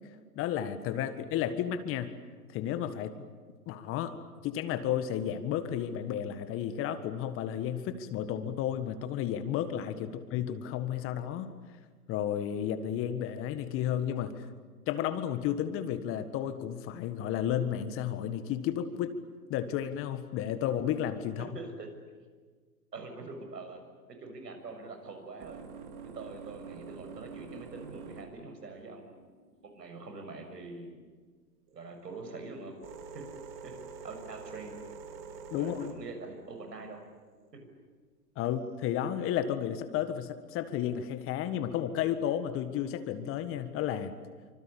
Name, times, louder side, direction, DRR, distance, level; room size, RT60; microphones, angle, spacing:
voice 1, 0.3-2.1 2.5-3.2 3.6-4.2 4.4-11.5 12.1-14.4 14.9-19.1 19.5-21.5 35.5-35.9 38.3-44.1, left 10 dB, 25° left, 11 dB, 1.7 m, -32 dB
voice 2, 21.4-21.9 22.9-23.8 24.1-25.6 26.0-29.2 29.7-31.0 31.7-32.8 33.1-33.3 33.6-33.7 34.0-34.8 35.5-37.0, right 3 dB, 85° right, 6 dB, 6.7 m, -44 dB
sound 1, 24.6-30.9 31.7-37.5 38.4-38.9, right 6 dB, 40° right, 4.1 m, -47 dB
25.5 x 25.5 x 8.7 m, 1.5 s
hypercardioid pair, 130°, 48 cm